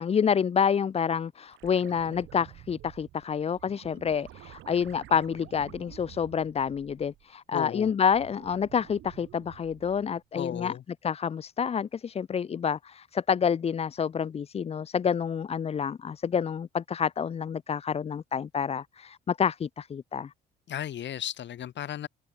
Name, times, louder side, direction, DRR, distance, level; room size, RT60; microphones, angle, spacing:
voice 1, 0.0-10.7 11.0-20.3, left 7 dB, 30° left, 0.4 m, -28 dB
sound 1, 1.5-7.3 7.7-10.2 12.6-12.7, right 14 dB, 85° right, 7.0 m, -50 dB
voice 2, 7.5-7.9 10.4-10.8 20.7-22.1, left 10 dB, 65° left, 2.2 m, -35 dB
cardioid pair, 90°, 20 cm